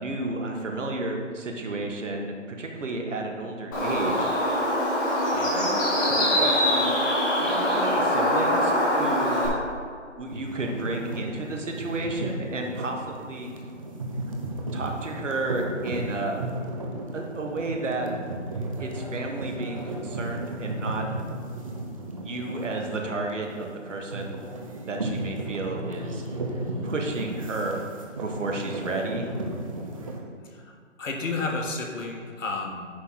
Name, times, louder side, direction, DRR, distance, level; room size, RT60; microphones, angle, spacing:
voice 1, 0.0-4.3 4.8-4.9 5.5-5.7 6.0-7.0 7.4-9.4 10.2-13.5 14.7-16.4 17.1-18.1 18.8-21.0 22.2-24.4 24.9-26.2 26.8-27.8 28.2-29.3, right 2 dB, 70° right, 1 dB, 1.6 m, -32 dB
Bird, 3.7-9.5, equal, 15° left, 1.4 m, -23 dB
sound 1, 10.3-30.2, right 1 dB, 25° right, 0.7 m, -35 dB
voice 2, 30.4-32.9, left 3 dB, 75° left, 2 dB, 1.7 m, -32 dB
9.6 x 3.8 x 5.8 m, 2.1 s
hypercardioid pair, 165°, 38 cm